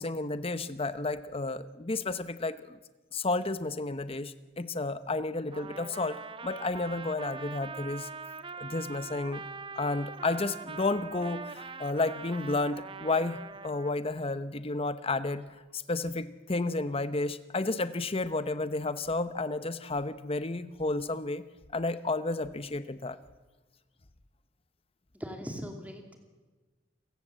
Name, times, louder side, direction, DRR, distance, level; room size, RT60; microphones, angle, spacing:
voice 1, 0.0-2.8 3.1-6.2 6.4-8.1 8.6-9.4 9.8-15.5 15.7-21.4 21.7-23.2, left 2 dB, 30° left, 12 dB, 0.9 m, -32 dB
Trumpet, 5.5-13.9, right 4 dB, 25° right, 0.8 m, -43 dB
voice 2, 25.1-26.2, equal, 10° right, 3 dB, 2.7 m, -40 dB
28.5 x 15.5 x 7.6 m, 1.3 s
head